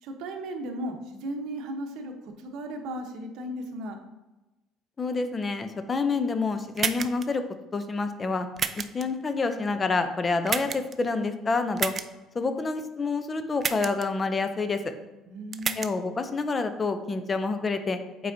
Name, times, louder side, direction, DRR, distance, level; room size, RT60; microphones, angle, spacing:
voice 1, 0.0-4.0 15.3-16.0, right 1 dB, 70° right, 4 dB, 0.9 m, -36 dB
voice 2, 5.0-7.4 7.7-8.5 8.7-11.9 12.3-14.9 15.8-18.3, left 4 dB, 25° left, 9 dB, 0.5 m, -28 dB
sound 1, 6.8-7.3 8.6-9.0 10.5-10.9 11.8-12.1 13.6-14.1 15.5-15.9, right 6 dB, 35° right, 0.3 m, -29 dB
7.7 x 4.7 x 2.7 m, 1.1 s
cardioid pair, 125°, 0 cm